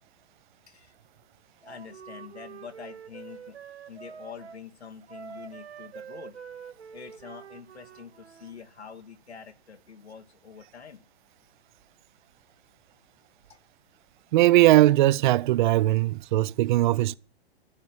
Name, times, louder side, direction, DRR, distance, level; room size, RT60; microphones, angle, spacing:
voice 1, 1.6-3.6 3.9-6.4 6.9-11.0 13.5-13.6, left 6 dB, 85° left, 2.4 m, -46 dB
Wind instrument woodwind instrument, 1.6-4.6 5.1-8.6, right 7 dB, 80° right, 2.8 m, -45 dB
voice 2, 14.3-17.2, right 16 dB, 50° right, 0.6 m, -20 dB
13.0 x 10.5 x 9.2 m
hypercardioid pair, 115°, 32 cm